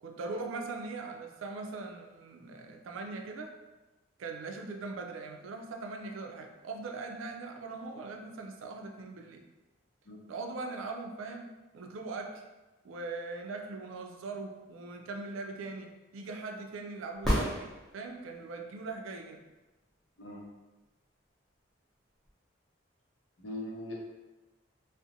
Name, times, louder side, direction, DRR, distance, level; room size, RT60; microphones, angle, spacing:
voice 1, 0.0-3.5 4.2-9.4 10.3-12.4 12.8-19.4, right 3 dB, 85° right, 4 dB, 0.3 m, -40 dB
sound 1, 17.2-18.4 22.3-22.4, equal, ahead, 0.5 m, -30 dB
voice 2, 23.4-23.9, left 1 dB, 70° left, -2 dB, 0.6 m, -40 dB
2.6 x 2.0 x 2.6 m, 1.1 s
head